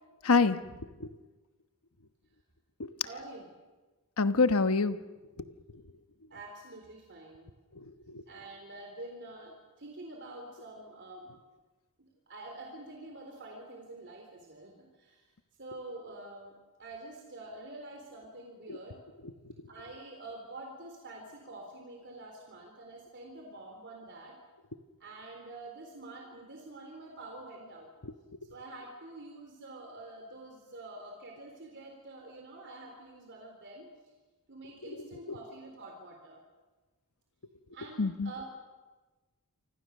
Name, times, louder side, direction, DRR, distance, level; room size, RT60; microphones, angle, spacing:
voice 1, 0.2-0.6 1.0-1.1 2.8-2.9 4.2-5.0 7.7-8.2 18.7-18.8 28.0-28.1 38.0-38.3, left 4 dB, 70° left, 11 dB, 1.1 m, -26 dB
voice 2, 3.0-3.5 6.3-7.5 8.3-11.3 12.0-15.3 15.6-16.5 16.8-19.0 19.7-24.4 25.0-27.9 28.5-33.9 34.5-36.4 37.7-38.4, right 2 dB, 55° right, 1 dB, 3.9 m, -47 dB
28.5 x 24.5 x 6.6 m, 1.2 s
head